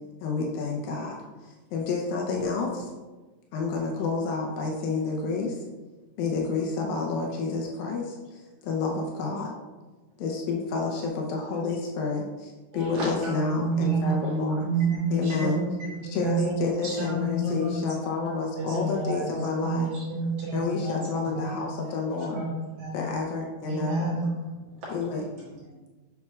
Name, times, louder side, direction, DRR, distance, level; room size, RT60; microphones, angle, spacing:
voice 1, 0.2-2.9 3.5-5.6 6.2-9.5 10.2-14.6 15.1-15.6 16.1-19.9 20.5-22.4 22.9-24.2 24.9-25.2, left 4 dB, 85° left, -1 dB, 2.5 m, -29 dB
voice 2, 12.7-14.1 14.6-17.8 18.6-19.3 19.6-21.5 22.3-22.4 22.8-23.1 23.7-24.3 24.6-24.9, right 2 dB, 60° right, -8 dB, 3.0 m, -29 dB
voice 3, 23.7-24.1 25.1-25.9, equal, 30° right, -8 dB, 2.1 m, -53 dB
7.3 x 7.1 x 2.4 m, 1.2 s
omnidirectional pair, 4.0 m